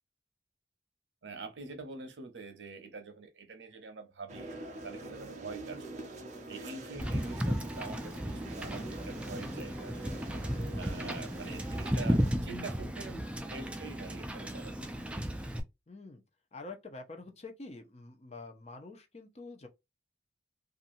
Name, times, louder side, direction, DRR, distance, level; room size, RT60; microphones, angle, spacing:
voice 1, 1.2-4.5 4.8-6.1 6.5-10.0 10.7-14.9, right 3 dB, 80° right, 0.8 m, -45 dB
sound 1, 4.3-12.3, right 2 dB, 40° right, 0.6 m, -45 dB
voice 2, 6.9-7.3 11.0-11.5 15.9-16.2 16.5-19.7, left 3 dB, 35° left, 0.6 m, -47 dB
Wind / Boat Water vehicle, 7.0-15.6, equal, 5° right, 0.3 m, -34 dB
2.8 x 2.5 x 2.5 m
head